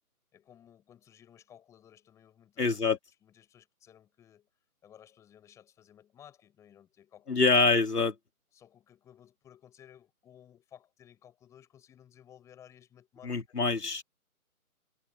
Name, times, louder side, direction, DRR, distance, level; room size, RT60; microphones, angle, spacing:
voice 1, 0.3-4.5 4.8-7.6 8.5-13.6, left 10 dB, 5° left, 4.8 m, -57 dB
voice 2, 2.6-3.0 7.3-8.1 13.2-14.0, left 4 dB, 90° left, 2.6 m, -25 dB
figure-of-eight pair, 165°, 45 cm